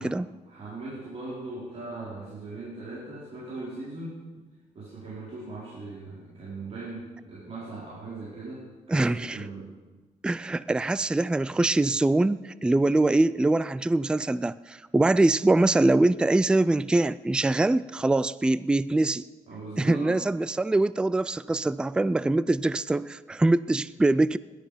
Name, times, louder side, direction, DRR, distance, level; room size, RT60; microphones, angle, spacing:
voice 1, 0.5-4.2 4.7-9.7 19.5-20.2, right 2 dB, 50° right, -8 dB, 4.8 m, -39 dB
voice 2, 8.9-9.4 10.2-19.3 19.8-24.4, right 2 dB, 5° right, 17 dB, 0.3 m, -23 dB
17.5 x 11.5 x 5.2 m, 1.3 s
cardioid pair, 115°, 13 cm